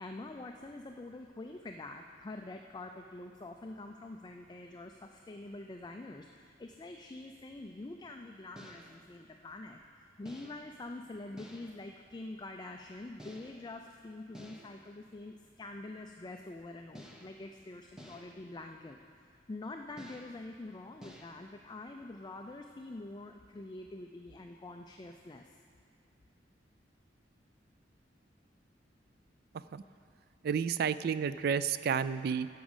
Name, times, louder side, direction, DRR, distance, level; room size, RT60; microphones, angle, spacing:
voice 1, 0.0-19.0 19.3-25.6, left 2 dB, 25° left, 4 dB, 0.4 m, -46 dB
sound 1, 8.6-9.1 10.3-10.8 11.4-11.9 13.2-13.8 14.3-14.9 16.9-17.5 18.0-18.5 20.0-20.5 21.0-21.4, equal, 5° right, 0.8 m, -52 dB
voice 2, 30.4-32.5, right 7 dB, 55° right, 14 dB, 0.3 m, -31 dB
11.5 x 6.1 x 7.2 m, 2.2 s
head